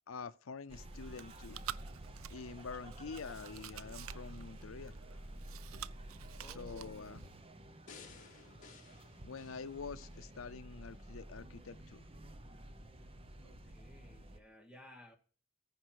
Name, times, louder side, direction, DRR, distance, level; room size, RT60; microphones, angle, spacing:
voice 1, 0.1-1.6 2.3-4.9 6.6-7.2 9.2-12.1, left 5 dB, 85° left, 0.6 m, -46 dB
sound 1, 0.7-14.4, right 1 dB, 30° right, 0.9 m, -51 dB
Chewing mastication, 0.8-7.4, right 10 dB, 85° right, 0.4 m, -50 dB
voice 2, 6.4-7.4 13.4-15.2, left 1 dB, 5° right, 1.9 m, -57 dB
sound 2, 7.9-10.4 10.9-11.0, left 5 dB, 40° left, 2.5 m, -57 dB
14.5 x 5.2 x 6.4 m
head